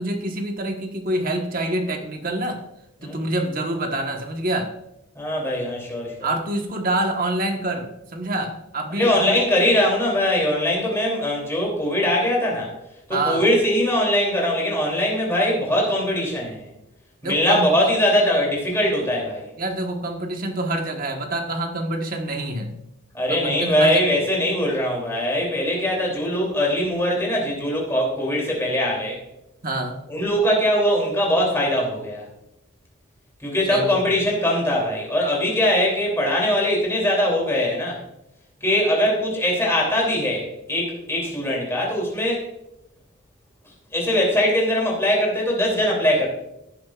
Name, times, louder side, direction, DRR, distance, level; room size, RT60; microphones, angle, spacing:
voice 1, 0.0-2.6 3.0-4.7 6.2-9.3 9.6-9.7 13.1-13.4 17.2-17.7 19.6-22.8 23.3-24.0 29.6-30.0 33.7-34.0, right 1 dB, 40° right, 3 dB, 1.3 m, -26 dB
voice 2, 5.1-6.3 9.0-12.7 13.1-16.7 17.2-19.5 23.1-29.2 30.1-32.3 33.4-38.0 38.6-42.5 43.9-46.3, left 1 dB, 10° left, -2 dB, 2.9 m, -21 dB
16.0 x 7.3 x 2.4 m, 0.86 s
head